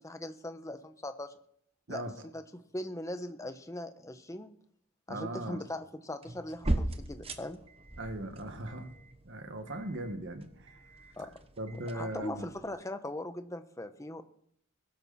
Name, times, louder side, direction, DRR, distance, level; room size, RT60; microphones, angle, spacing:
voice 1, 0.0-1.3 1.9-4.5 5.1-7.6 11.2-11.4 11.9-14.2, left 1 dB, 15° left, 9 dB, 0.9 m, -40 dB
voice 2, 5.1-5.6 8.0-8.9 9.2-10.8 11.6-12.5, right 1 dB, 55° right, 7 dB, 1.7 m, -39 dB
sound 1, 6.2-12.7, right 1 dB, 25° right, 1.0 m, -39 dB
21.0 x 12.0 x 4.2 m, 0.68 s
head